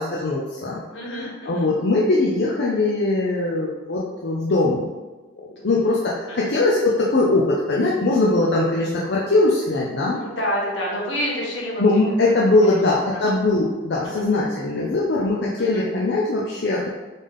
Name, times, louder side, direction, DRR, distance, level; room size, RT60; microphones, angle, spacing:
voice 1, 0.0-4.9 5.6-10.2 11.8-16.9, left 2 dB, 65° left, -4 dB, 0.6 m, -21 dB
voice 2, 0.9-1.7 5.6-5.7 6.3-6.5 10.2-12.3 12.7-12.8 13.1-13.3 14.0-14.2 15.6-15.9, equal, 80° left, -3 dB, 1.2 m, -29 dB
4.0 x 3.5 x 3.6 m, 1.2 s
head